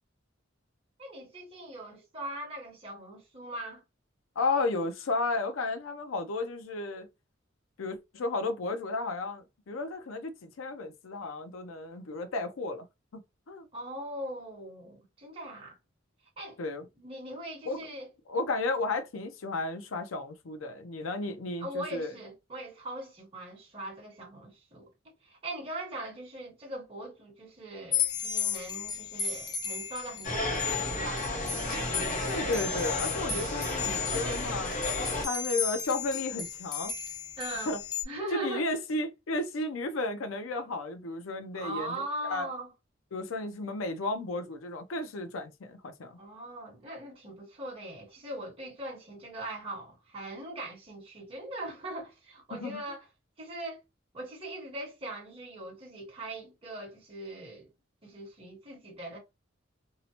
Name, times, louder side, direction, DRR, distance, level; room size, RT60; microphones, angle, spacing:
voice 1, 1.0-3.8 13.7-15.8 16.4-16.6 17.0-18.1 21.6-31.2 37.4-37.7 38.0-38.7 41.5-42.7 46.2-53.1 53.4-53.8 54.1-57.7 58.0-59.2, right 1 dB, 30° right, 1.1 m, -40 dB
voice 2, 4.4-7.1 7.8-12.9 13.5-13.7 16.6-16.8 17.7-17.9 18.3-22.1 32.3-34.7 35.2-36.9 37.7-37.8 38.3-41.9 42.3-42.5 43.1-46.2 52.6-52.8, left 2 dB, 85° left, 0.5 m, -33 dB
sound 1, 27.9-38.0, left 7 dB, 20° left, 0.4 m, -35 dB
sound 2, 30.2-35.3, left 1 dB, 40° left, 0.7 m, -32 dB
2.7 x 2.0 x 2.8 m
head